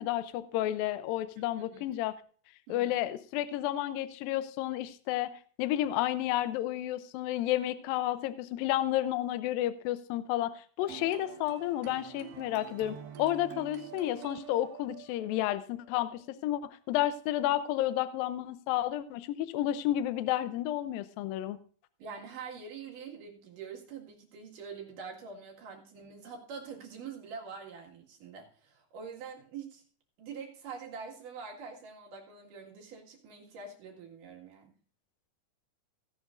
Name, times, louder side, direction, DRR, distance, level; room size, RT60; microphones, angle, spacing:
voice 1, 0.0-2.1 2.7-21.6, left 13 dB, 80° left, 12 dB, 2.1 m, -31 dB
sound 1, 10.8-16.3, right 7 dB, 85° right, 3.8 m, -47 dB
voice 2, 22.0-29.8 30.2-34.7, right 5 dB, 55° right, 0 dB, 3.2 m, -45 dB
17.0 x 11.0 x 2.6 m, 0.43 s
omnidirectional pair, 5.0 m